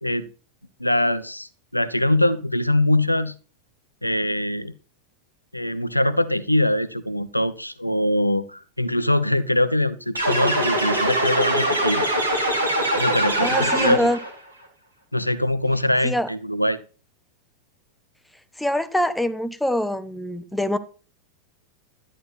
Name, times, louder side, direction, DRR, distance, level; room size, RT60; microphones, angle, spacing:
voice 1, 0.8-3.3 4.0-4.7 5.5-12.1 13.0-14.1 15.1-16.8, left 1 dB, 85° left, 0.9 m, -23 dB
sound 1, 10.1-14.3, right 1 dB, 80° right, 4.0 m, -22 dB
voice 2, 13.4-14.2 16.0-16.3 18.6-20.8, left 1 dB, 5° left, 1.2 m, -24 dB
12.5 x 10.5 x 4.2 m
figure-of-eight pair, 90°, 0 cm